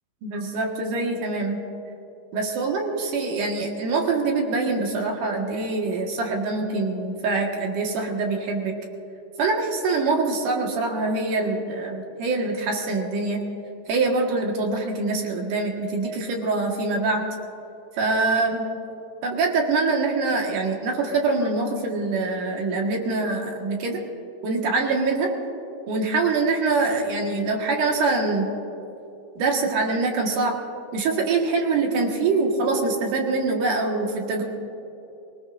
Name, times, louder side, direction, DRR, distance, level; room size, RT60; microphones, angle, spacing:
voice 1, 0.2-1.6 2.3-8.7 9.4-13.4 13.9-17.2 18.0-18.7 19.2-24.0 24.4-25.3 25.9-28.5 29.4-30.6 30.9-34.4, right 3 dB, 60° right, 0 dB, 2.6 m, -24 dB
24.0 x 20.0 x 2.6 m, 2.9 s
omnidirectional pair, 5.1 m